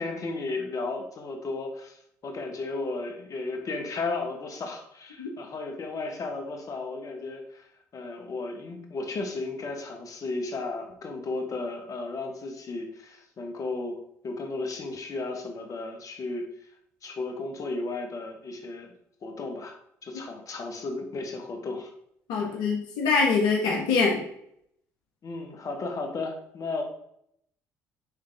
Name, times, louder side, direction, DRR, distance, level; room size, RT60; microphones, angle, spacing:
voice 1, 0.0-2.0 2.2-7.7 7.9-14.0 14.2-16.5 17.0-18.9 19.2-19.7 20.0-21.9 25.2-26.8, left 3 dB, 50° left, 3 dB, 1.4 m, -34 dB
voice 2, 22.3-24.2, left 4 dB, 75° left, 0 dB, 1.2 m, -24 dB
9.5 x 3.7 x 3.4 m, 0.73 s
hypercardioid pair, 60°, 8 cm